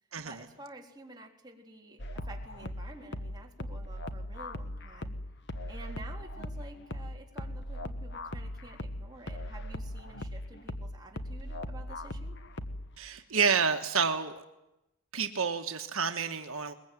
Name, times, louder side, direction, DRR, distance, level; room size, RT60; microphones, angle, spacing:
voice 1, 0.2-5.2 5.7-12.4, right 2 dB, 20° right, 0 dB, 3.5 m, -50 dB
sound 1, 2.0-13.0, left 1 dB, 50° left, 1.5 m, -39 dB
voice 2, 13.0-14.4 15.1-16.7, right 6 dB, 65° right, 5 dB, 1.4 m, -29 dB
22.5 x 21.5 x 9.3 m, 0.92 s
head